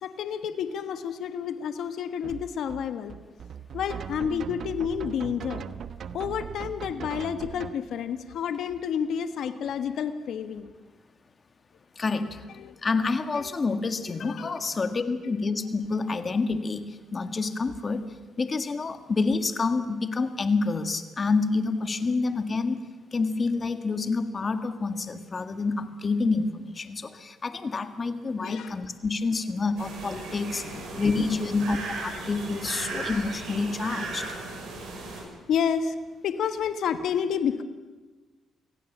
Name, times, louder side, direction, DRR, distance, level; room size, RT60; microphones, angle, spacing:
voice 1, 0.0-3.1 3.7-5.6 6.1-10.7 12.1-12.3 12.6-13.5 14.1-14.5 15.3-15.4 28.4-28.7 30.7-31.0 35.5-35.9 36.2-37.6, left 7 dB, 70° left, 9 dB, 1.3 m, -30 dB
sound 1, 2.2-7.7, right 7 dB, 60° right, 0.9 m, -39 dB
voice 2, 12.8-16.9 17.1-18.0 18.4-22.8 23.1-30.6 31.0-31.8 32.0-34.2, left 4 dB, 35° left, 9 dB, 1.8 m, -28 dB
sound 2, 29.8-35.2, right 3 dB, 80° right, 6.6 m, -36 dB
25.0 x 16.5 x 7.3 m, 1.2 s
cardioid pair, 90°, 0 cm